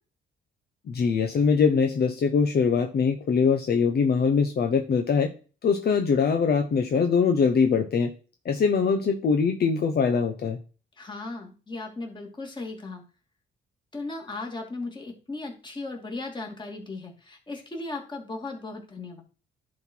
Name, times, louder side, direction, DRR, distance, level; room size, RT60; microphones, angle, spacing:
voice 1, 0.9-5.3 5.6-8.1 8.4-10.6, left 5 dB, 55° left, 5 dB, 1.1 m, -22 dB
voice 2, 11.0-13.0 13.9-19.2, left 3 dB, 25° left, 2 dB, 2.7 m, -36 dB
10.5 x 4.3 x 4.7 m, 0.35 s
cardioid pair, 90°, 20 cm